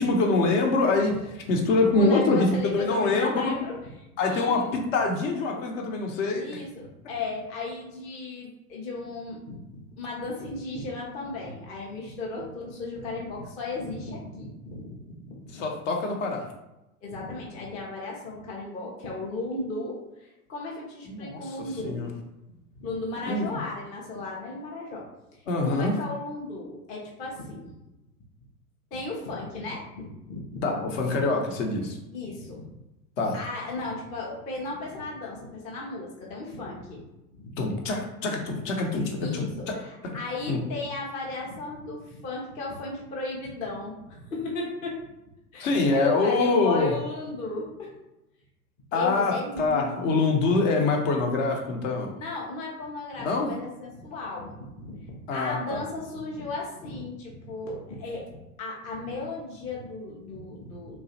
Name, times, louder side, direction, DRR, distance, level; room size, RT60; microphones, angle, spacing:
voice 1, 0.0-3.5 4.2-6.5 15.5-16.5 21.1-21.4 21.8-22.1 23.2-23.5 25.5-25.9 30.6-32.0 33.2-33.4 37.6-39.8 40.0-40.2 40.5-40.6 45.6-46.9 48.9-52.1 53.2-53.5 55.3-55.8, left 3 dB, 55° left, 2 dB, 0.7 m, -25 dB
voice 2, 1.9-3.8 4.2-4.8 6.4-9.6 10.0-15.7 17.0-22.1 22.8-25.1 25.3-27.7 28.9-30.6 32.1-32.7 33.3-37.0 37.4-37.5 39.2-45.0 45.5-47.9 48.9-50.2 52.1-61.0, left 3 dB, 15° left, -3 dB, 0.4 m, -35 dB
2.9 x 2.3 x 2.7 m, 0.94 s
figure-of-eight pair, 90°, 45 cm